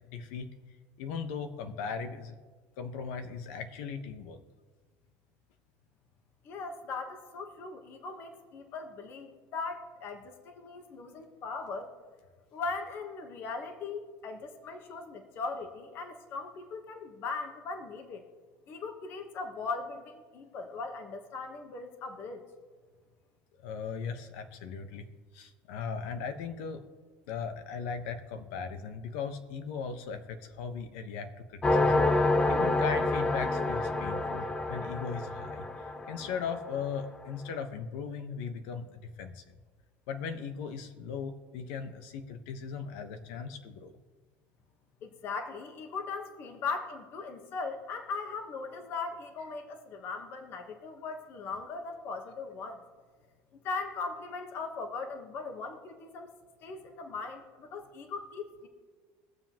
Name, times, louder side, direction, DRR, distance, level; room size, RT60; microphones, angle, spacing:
voice 1, 0.1-0.5 1.0-2.4 2.8-4.4 23.6-25.1 25.3-26.8 27.3-32.1 32.5-35.7 36.1-39.4 40.1-44.0, left 6 dB, 75° left, 8 dB, 1.1 m, -38 dB
voice 2, 6.4-11.9 12.5-18.2 18.7-22.4 45.0-52.8 53.5-56.3 56.6-58.7, left 4 dB, 40° left, 5 dB, 1.1 m, -39 dB
sound 1, 31.6-37.0, left 2 dB, 15° left, 0.5 m, -28 dB
22.5 x 7.5 x 3.0 m, 1.5 s
cardioid pair, 165°, 6 cm